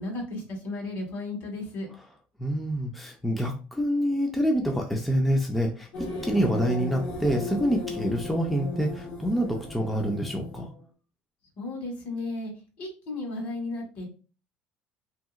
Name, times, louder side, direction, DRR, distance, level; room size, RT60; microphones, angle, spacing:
voice 1, 0.0-1.9 11.6-12.5 12.8-14.1, left 2 dB, 60° left, 0 dB, 1.4 m, -34 dB
voice 2, 2.4-5.9 6.2-10.7, equal, 5° left, 1 dB, 0.4 m, -26 dB
sound 1, 5.9-10.8, left 2 dB, 80° left, 1.2 m, -36 dB
2.8 x 2.7 x 2.4 m, 0.35 s
cardioid pair, 150°, 4 cm